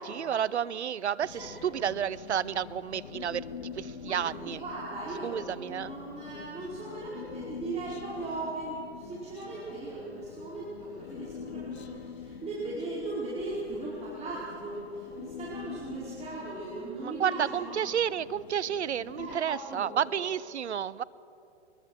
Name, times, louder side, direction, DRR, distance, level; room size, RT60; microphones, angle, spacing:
voice 1, 0.1-3.4 3.7-4.6 5.2-5.9 17.0-21.0, right 9 dB, 80° right, 20 dB, 0.7 m, -31 dB
Human voice, 1.2-19.4, left 6 dB, 70° left, 1.3 m, -45 dB
voice 2, 1.3-1.8 4.0-17.9 19.2-20.3, right 2 dB, 20° right, -7 dB, 5.0 m, -38 dB
22.0 x 21.5 x 6.4 m, 2.8 s
hypercardioid pair, 115°, 34 cm